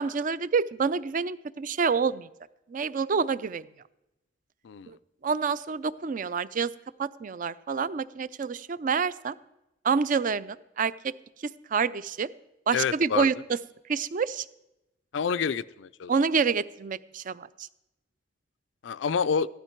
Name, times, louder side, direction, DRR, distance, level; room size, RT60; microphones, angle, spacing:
voice 1, 0.0-2.3 2.7-3.7 4.9-5.0 5.2-6.7 7.0-9.4 9.8-10.9 11.7-12.3 12.7-13.3 13.9-14.5 16.1-17.7, right 5 dB, 45° right, 17 dB, 0.4 m, -27 dB
voice 2, 12.7-13.3 15.1-16.1 18.8-19.5, left 6 dB, 85° left, 15 dB, 0.4 m, -28 dB
15.0 x 12.0 x 4.5 m, 0.91 s
head